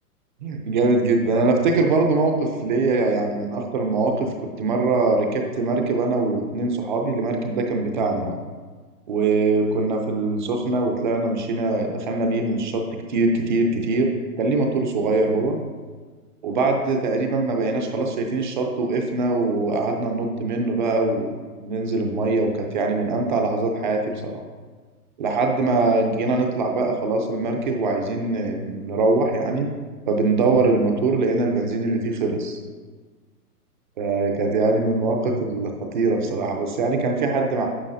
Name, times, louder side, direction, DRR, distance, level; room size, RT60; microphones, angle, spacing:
voice 1, 0.4-8.4 9.1-14.1 14.4-15.6 16.4-21.4 21.6-24.3 25.2-29.7 30.1-32.6 34.0-37.7, right 3 dB, 30° right, 3 dB, 0.6 m, -22 dB
9.8 x 5.5 x 2.6 m, 1.4 s
hypercardioid pair, 150°, 46 cm